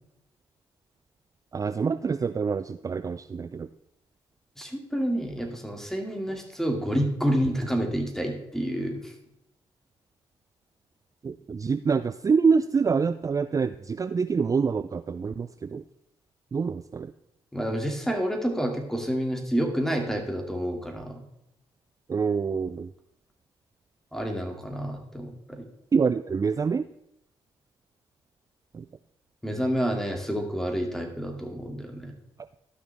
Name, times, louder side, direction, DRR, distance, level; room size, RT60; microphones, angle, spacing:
voice 1, 1.5-3.7 11.2-15.8 16.5-17.1 22.1-22.9 25.9-26.8 28.7-28.9, right 5 dB, 30° right, 12 dB, 0.4 m, -26 dB
voice 2, 4.6-9.1 17.5-21.2 24.1-25.7 29.4-32.2, equal, 5° left, 3 dB, 2.4 m, -29 dB
13.0 x 6.0 x 3.5 m, 0.80 s
hypercardioid pair, 50°, 11 cm